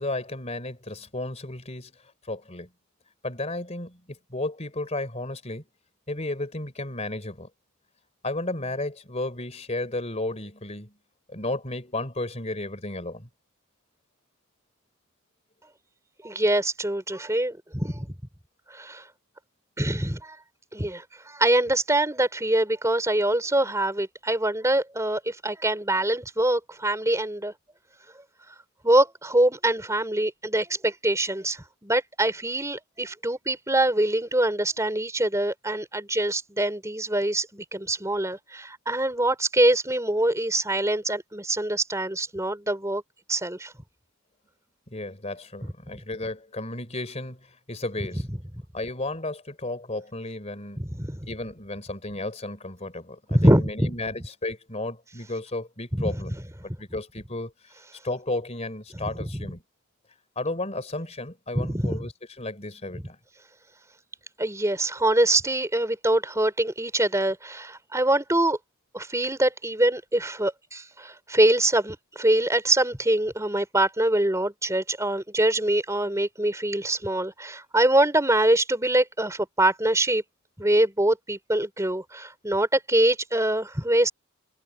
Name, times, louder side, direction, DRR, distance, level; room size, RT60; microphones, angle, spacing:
voice 1, 0.0-1.9 2.3-2.7 3.2-5.6 6.1-7.5 8.2-10.9 11.3-13.3 44.9-47.4 47.7-48.3 48.7-50.8 51.3-56.4 56.8-57.5 58.0-59.6 60.4-62.1 62.4-63.2, left 2 dB, 30° left, 3.7 m, -33 dB
voice 2, 16.2-18.1 18.7-19.0 19.8-20.3 20.7-27.5 28.8-43.0 43.3-43.7 50.8-51.3 53.3-53.9 56.0-56.2 58.9-59.3 61.5-62.0 64.4-68.6 68.9-80.2 80.6-84.1, right 1 dB, 15° right, 4.1 m, -24 dB
head